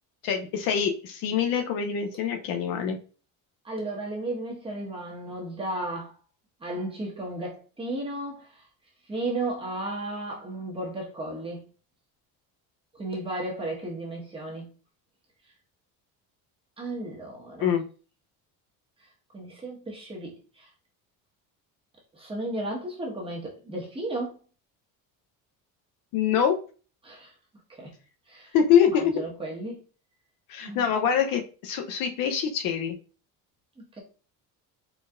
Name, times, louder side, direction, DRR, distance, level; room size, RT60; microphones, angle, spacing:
voice 1, 0.2-3.0 17.6-17.8 26.1-26.6 28.5-29.1 30.5-32.9, left 8 dB, 65° left, 5 dB, 0.8 m, -24 dB
voice 2, 3.6-6.1 6.6-8.5 9.1-11.6 12.9-14.7 16.8-17.8 19.3-20.7 22.1-24.3 27.0-27.3 27.8-27.9 28.3-28.5 28.8-29.8 30.6-30.9 33.8-34.0, right 2 dB, 15° right, -2 dB, 1.4 m, -34 dB
4.6 x 4.0 x 2.5 m, 0.37 s
cardioid pair, 165°, 36 cm